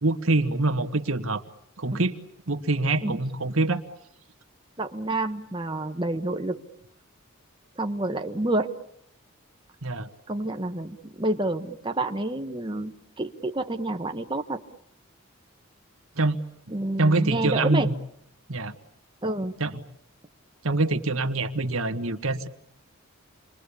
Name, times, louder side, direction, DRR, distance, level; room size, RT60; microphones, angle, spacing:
voice 1, 0.0-1.4 1.8-2.2 2.5-3.8 9.8-10.1 16.2-16.4 17.0-17.9 18.5-18.7 19.6-19.8 20.6-22.5, right 2 dB, 80° right, 7 dB, 1.6 m, -25 dB
voice 2, 4.8-6.6 7.8-8.7 10.3-14.6 16.7-17.9 19.2-19.5, right 2 dB, 20° right, 5 dB, 1.2 m, -29 dB
29.0 x 22.5 x 8.5 m, 0.71 s
head